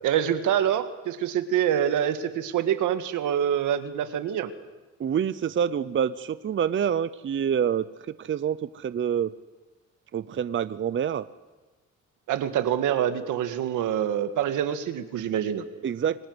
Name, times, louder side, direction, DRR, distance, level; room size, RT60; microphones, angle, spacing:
voice 1, 0.0-4.5 12.3-15.6, right 10 dB, 85° right, 9 dB, 1.8 m, -26 dB
voice 2, 5.0-7.9 8.2-9.3 10.1-11.2 15.8-16.3, right 8 dB, 40° right, 15 dB, 0.7 m, -26 dB
26.0 x 18.5 x 8.0 m, 1.2 s
cardioid pair, 90°, 30 cm